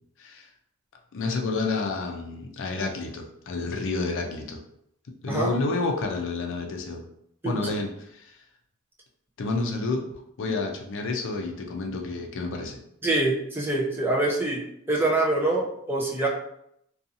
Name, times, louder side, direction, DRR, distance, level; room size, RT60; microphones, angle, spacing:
voice 1, 0.2-0.5 1.1-4.6 5.2-7.0 7.4-8.4 9.4-10.1 10.4-12.8, left 3 dB, 60° left, 3 dB, 0.4 m, -29 dB
voice 2, 13.0-14.6 14.9-16.3, right 2 dB, 10° right, -2 dB, 0.4 m, -25 dB
2.5 x 2.3 x 2.6 m, 0.74 s
head